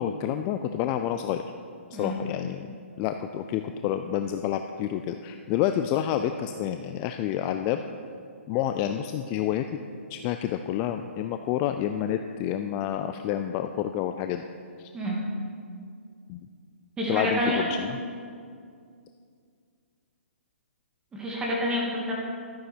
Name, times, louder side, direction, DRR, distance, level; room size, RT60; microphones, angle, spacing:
voice 1, 0.0-1.4 1.9-7.8 8.5-9.7 10.1-14.4 14.8-14.9 16.3-16.5 17.1-18.0, left 10 dB, 25° left, 7 dB, 0.3 m, -29 dB
voice 2, 17.0-17.6 21.1-22.1, equal, 10° right, -4 dB, 2.3 m, -28 dB
13.0 x 9.3 x 4.4 m, 2.2 s
hypercardioid pair, 145°, 7 cm